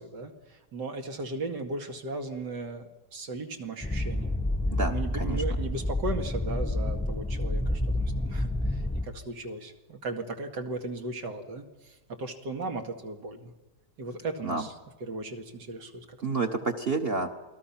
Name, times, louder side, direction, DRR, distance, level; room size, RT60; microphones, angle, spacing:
voice 1, 0.0-4.4 4.9-13.5 14.0-14.7 15.0-16.5, right 3 dB, 85° right, 4 dB, 2.7 m, -37 dB
sound 1, 3.8-9.0, left 1 dB, 5° left, 0.9 m, -29 dB
voice 2, 4.7-5.4 14.4-14.6 16.2-17.3, right 3 dB, 40° right, 6 dB, 1.3 m, -29 dB
28.0 x 19.5 x 5.9 m, 1.2 s
omnidirectional pair, 1.8 m